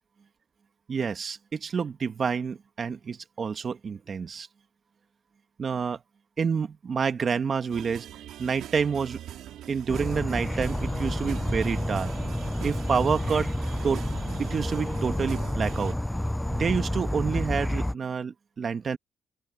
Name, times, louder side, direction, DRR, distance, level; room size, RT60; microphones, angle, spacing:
voice 1, 0.9-4.5 5.6-6.0 6.4-8.1 8.4-9.2 9.7-12.1 12.6-13.5 13.8-14.0 14.4-16.0 16.5-19.0, right 6 dB, 45° right, 1.6 m, -28 dB
sound 1, 7.7-15.9, right 12 dB, 80° right, 4.8 m, -42 dB
Insect / Frog, 9.9-17.9, left 1 dB, 5° left, 0.5 m, -29 dB
open air
cardioid pair, 90°, 0 cm